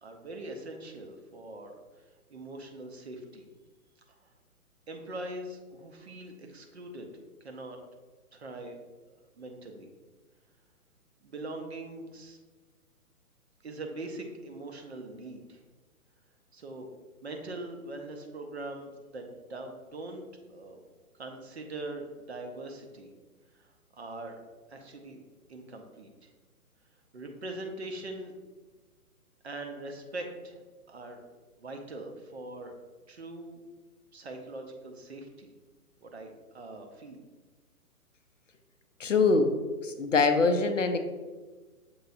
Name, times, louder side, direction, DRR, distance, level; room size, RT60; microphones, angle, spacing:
voice 1, 0.0-1.7 2.3-3.5 4.1-4.2 4.9-7.1 7.4-7.8 8.3-8.8 9.4-9.9 11.2-12.4 13.6-15.6 16.5-16.9 17.2-20.2 20.5-20.8 21.2-23.1 23.6-23.7 23.9-24.4 24.7-25.2 25.5-26.1 27.1-28.3 29.4-30.6 30.9-31.2 31.6-32.7 33.1-33.6 34.1-35.5 36.0-37.2, right 2 dB, 45° right, 4 dB, 0.6 m, -42 dB
voice 2, 39.0-39.5 39.8-41.0, left 4 dB, 55° left, 8 dB, 0.5 m, -23 dB
6.9 x 3.1 x 2.5 m, 1.3 s
figure-of-eight pair, 130°, 45 cm